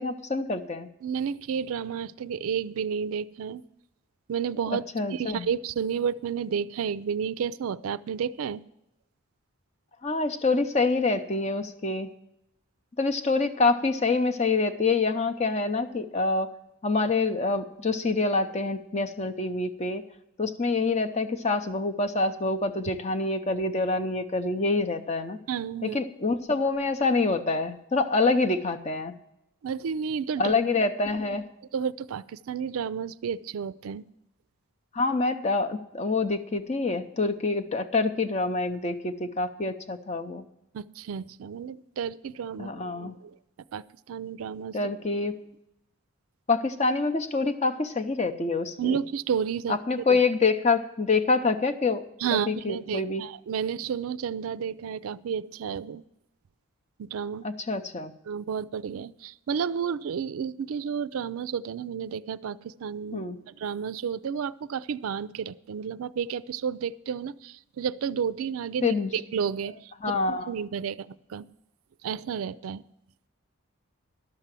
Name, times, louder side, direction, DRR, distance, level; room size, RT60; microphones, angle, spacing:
voice 1, 0.0-0.9 4.7-5.5 10.0-12.1 13.0-16.5 16.8-20.0 20.4-25.4 25.8-29.1 30.4-31.5 34.9-40.4 42.6-43.2 44.7-45.3 46.5-49.0 49.7-52.0 52.3-53.2 57.4-58.1 63.1-63.4 68.8-69.1 70.0-70.5, left 3 dB, 30° left, 8 dB, 0.6 m, -26 dB
voice 2, 1.0-3.6 4.3-4.8 5.1-8.6 25.5-26.0 29.6-30.5 31.7-34.1 40.7-43.3 43.7-44.8 48.8-50.2 52.2-56.0 57.0-57.5 58.3-69.9 70.3-71.5 72.0-72.8, right 7 dB, 80° right, 17 dB, 0.4 m, -31 dB
11.5 x 6.8 x 7.4 m, 0.84 s
head